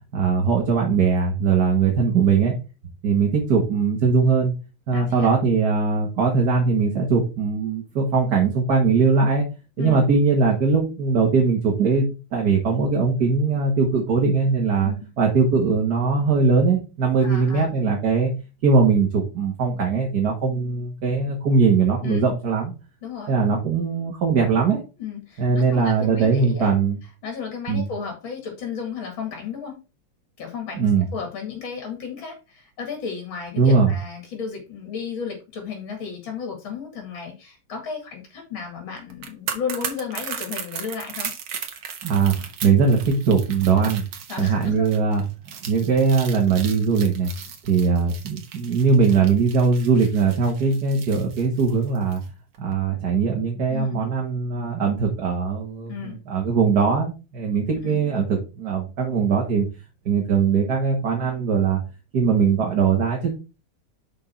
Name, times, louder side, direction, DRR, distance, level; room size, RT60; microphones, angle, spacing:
voice 1, 0.1-2.5 3.0-4.5 4.9-9.4 9.8-12.1 12.3-18.3 18.6-22.7 23.3-24.8 25.4-27.0 27.7-27.9 30.8-31.1 33.6-33.9 42.0-44.0 44.4-45.3 45.6-47.3 47.6-52.2 52.6-59.7 60.1-61.8 62.1-63.3, right 5 dB, 55° right, 0 dB, 1.9 m, -20 dB
voice 2, 4.9-5.3 9.8-10.0 14.8-15.1 17.2-17.7 22.0-22.2 23.0-23.3 25.0-26.7 27.2-29.7 30.4-41.3 44.3-45.0 53.7-54.0 55.9-56.2 57.8-58.0, left 6 dB, 75° left, 2 dB, 2.9 m, -33 dB
sound 1, 39.1-52.3 52.5-52.7, right 8 dB, 85° right, 2.0 m, -36 dB
6.2 x 5.6 x 4.5 m, 0.30 s
omnidirectional pair, 2.2 m